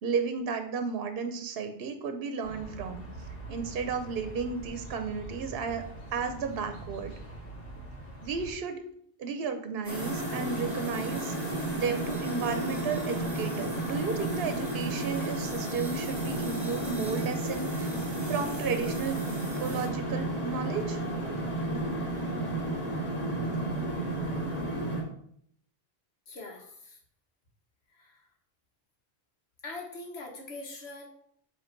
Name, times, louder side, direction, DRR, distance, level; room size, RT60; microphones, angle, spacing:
voice 1, 0.0-3.0 3.5-5.8 6.1-7.1 8.2-8.8 9.2-11.3 11.7-17.9 18.3-19.2 19.6-21.0, right 5 dB, 70° right, 8 dB, 0.9 m, -33 dB
sound 1, 2.4-8.5, right 2 dB, 60° left, 2.1 m, -43 dB
sound 2, 9.8-19.9, right 2 dB, 15° right, 1.1 m, -46 dB
sound 3, 9.9-25.0, right 1 dB, 35° left, 2.5 m, -32 dB
voice 2, 26.3-27.0 27.9-28.2 29.6-31.1, left 2 dB, 90° left, 1 dB, 1.5 m, -42 dB
7.8 x 3.2 x 4.5 m, 0.66 s
omnidirectional pair, 1.1 m